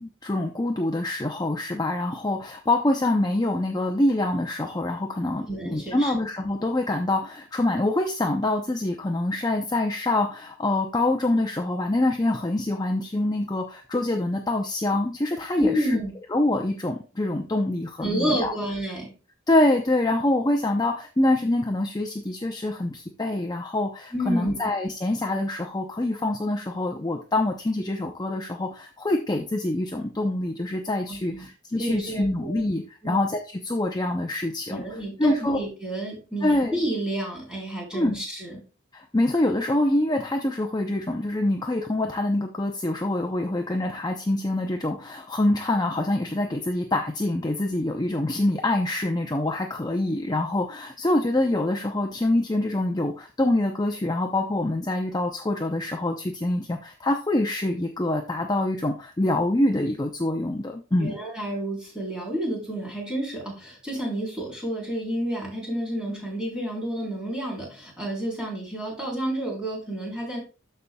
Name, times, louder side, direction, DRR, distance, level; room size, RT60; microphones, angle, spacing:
voice 1, 0.0-16.0 16.3-18.5 19.5-35.6 36.4-36.8 37.9-38.2 38.9-61.2, left 1 dB, 20° left, 3 dB, 0.6 m, -25 dB
voice 2, 5.5-6.1 15.6-16.1 18.0-19.1 24.1-24.7 31.1-31.5 31.8-32.7 33.0-33.2 34.7-38.6 61.0-70.4, right 1 dB, 5° right, -3 dB, 3.8 m, -30 dB
13.0 x 5.5 x 2.3 m, 0.34 s
head